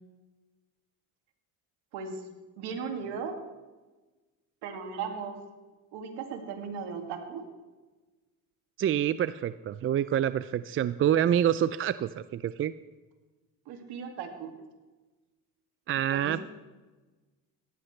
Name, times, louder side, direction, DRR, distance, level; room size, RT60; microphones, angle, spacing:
voice 1, 1.9-2.2 2.6-3.4 4.6-5.4 5.9-7.5 13.7-14.5 16.1-16.4, right 6 dB, 85° right, 4 dB, 2.3 m, -37 dB
voice 2, 8.8-12.7 15.9-16.4, right 10 dB, 35° right, 14 dB, 0.4 m, -27 dB
18.0 x 14.0 x 3.2 m, 1.2 s
cardioid pair, 100°, 40 cm